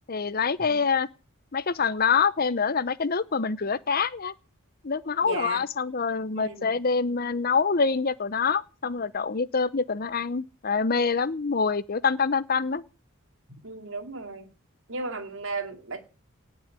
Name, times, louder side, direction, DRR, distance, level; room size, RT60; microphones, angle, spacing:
voice 1, 0.1-1.1 1.5-4.3 4.8-12.8, left 5 dB, 45° left, 0.7 m, -25 dB
voice 2, 5.2-5.6 6.3-6.7 13.6-14.5 14.9-16.1, right 3 dB, 60° right, 2.5 m, -35 dB
18.5 x 6.4 x 9.8 m
head